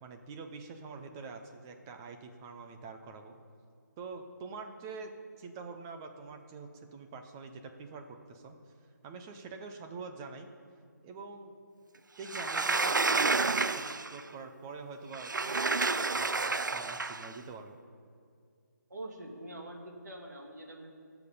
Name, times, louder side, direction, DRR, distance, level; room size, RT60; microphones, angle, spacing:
voice 1, 0.0-3.4 4.0-5.1 5.4-8.6 9.0-10.5 11.0-11.5 12.2-15.3 16.1-17.8, right 4 dB, 10° right, 5 dB, 0.5 m, -45 dB
Sliding door, 12.3-14.2 15.1-17.3, right 3 dB, 80° right, 0.6 m, -30 dB
voice 2, 18.9-20.9, right 1 dB, 65° right, 1 dB, 2.5 m, -44 dB
20.0 x 7.0 x 5.4 m, 2.3 s
figure-of-eight pair, 165°, 10 cm